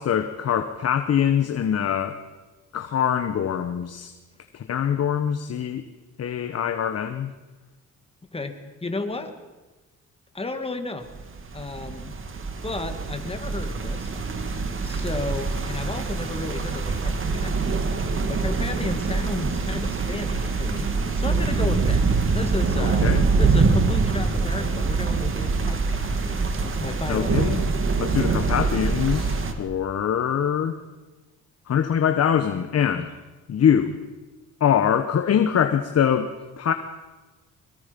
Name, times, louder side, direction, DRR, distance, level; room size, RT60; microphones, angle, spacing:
voice 1, 0.0-2.2 2.7-4.1 4.5-5.8 6.2-7.3 22.8-23.3 27.1-27.7 28.0-30.8 31.7-33.1 33.5-34.0 34.6-36.7, left 8 dB, 55° left, 8 dB, 1.2 m, -23 dB
voice 2, 8.3-9.3 10.3-11.1 11.5-12.1 12.6-14.1 14.8-20.9 21.2-22.1 22.3-23.0 23.4-27.4, left 2 dB, 20° left, 6 dB, 2.4 m, -33 dB
sound 1, 11.1-29.5, right 4 dB, 45° right, 2.3 m, -24 dB
23.0 x 23.0 x 5.4 m, 1.2 s
cardioid pair, 90°, 30 cm